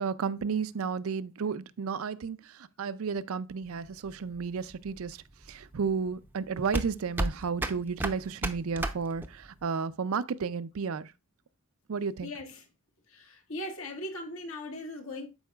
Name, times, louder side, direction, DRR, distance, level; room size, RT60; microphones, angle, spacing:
voice 1, 0.0-5.2 5.5-11.1 11.9-12.3, right 5 dB, 75° right, 0.5 m, -32 dB
sound 1, 3.7-9.6, right 1 dB, 10° right, 0.5 m, -34 dB
voice 2, 12.2-12.7 13.1-15.3, left 1 dB, 70° left, 1.6 m, -39 dB
12.0 x 4.7 x 2.3 m
head